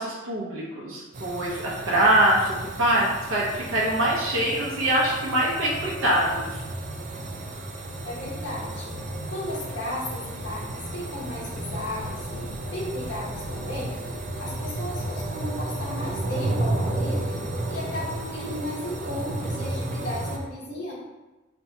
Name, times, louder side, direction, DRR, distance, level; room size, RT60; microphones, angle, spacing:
voice 1, 0.0-6.6, right 1 dB, 80° right, -5 dB, 0.6 m, -24 dB
sound 1, 1.1-20.4, right 1 dB, 35° right, 0.4 m, -32 dB
voice 2, 8.0-8.9 9.3-14.0 14.4-17.4 17.7-20.9, left 1 dB, 55° left, -6 dB, 1.0 m, -35 dB
4.2 x 2.2 x 2.8 m, 1.1 s
head